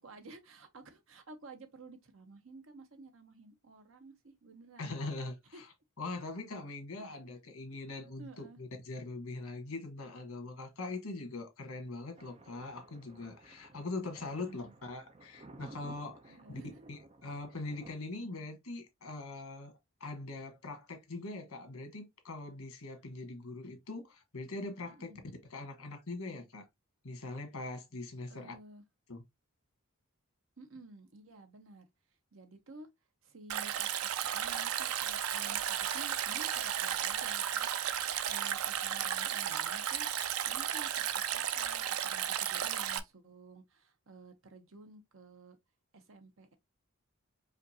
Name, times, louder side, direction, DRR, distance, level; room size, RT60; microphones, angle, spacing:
voice 1, 0.0-5.1 5.5-5.6 8.2-8.6 14.4-14.7 16.3-16.9 24.8-25.2 28.3-28.8 30.6-31.9 32.3-32.9 33.2-33.9 34.3-37.7 38.3-40.1 40.5-45.6 45.9-46.5, right 2 dB, 65° right, 0.9 m, -53 dB
voice 2, 4.8-5.7 6.0-16.6 16.9-19.7 20.0-25.1 25.5-26.7 27.0-28.5 29.1-29.2, left 2 dB, 85° left, 1.4 m, -42 dB
Thunder, 12.2-17.9, right 2 dB, 30° right, 0.5 m, -56 dB
Stream, 33.5-43.0, right 10 dB, 80° right, 0.4 m, -34 dB
5.1 x 2.5 x 2.7 m
head